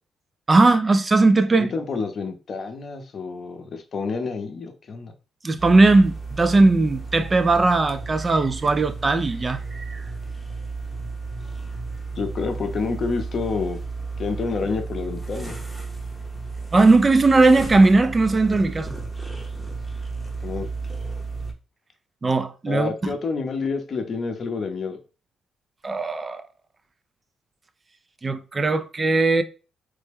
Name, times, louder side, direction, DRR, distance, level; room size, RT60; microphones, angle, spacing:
voice 1, 0.5-1.7 5.4-10.0 16.7-19.0 22.2-23.1 25.8-26.4 28.2-29.4, right 3 dB, 30° right, 0.3 m, -18 dB
voice 2, 1.6-5.1 12.1-13.8 14.2-15.6 20.4-20.7 22.7-25.0, left 4 dB, 50° left, 0.6 m, -28 dB
sound 1, 5.6-21.5, right 4 dB, 5° right, 0.7 m, -33 dB
3.3 x 2.1 x 3.3 m
cardioid pair, 90°, 0 cm